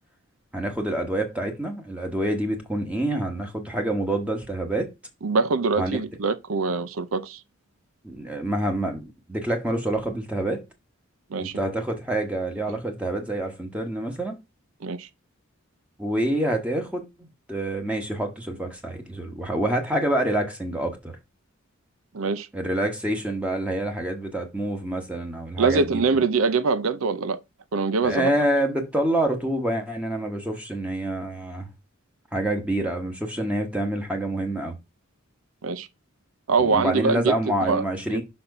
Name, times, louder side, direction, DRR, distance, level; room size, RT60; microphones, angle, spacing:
voice 1, 0.5-4.9 5.8-6.0 8.0-10.6 11.4-14.3 16.0-21.1 22.5-26.0 28.0-31.7 32.3-34.7 36.6-38.2, right 1 dB, 5° right, 1.2 m, -27 dB
voice 2, 5.2-7.4 11.3-11.6 14.8-15.1 22.1-22.5 25.6-27.4 27.7-28.3 35.6-35.9 36.5-37.8 38.1-38.2, right 4 dB, 80° right, 0.7 m, -24 dB
5.8 x 4.3 x 5.3 m
head